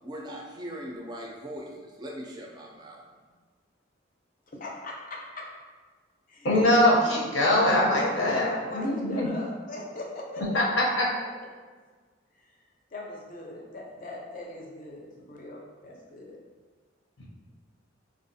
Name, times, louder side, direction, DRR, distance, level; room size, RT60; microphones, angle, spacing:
voice 1, 0.0-3.0, equal, 20° right, -2 dB, 0.4 m, -40 dB
voice 2, 4.6-5.5 6.3-6.9 7.9-11.2 12.3-12.5 12.9-16.4, left 2 dB, 45° left, -1 dB, 0.5 m, -40 dB
voice 3, 6.4-8.5 8.7-9.3 10.5-11.0, left 1 dB, 85° left, -3 dB, 0.7 m, -22 dB
3.5 x 2.3 x 2.6 m, 1.4 s
head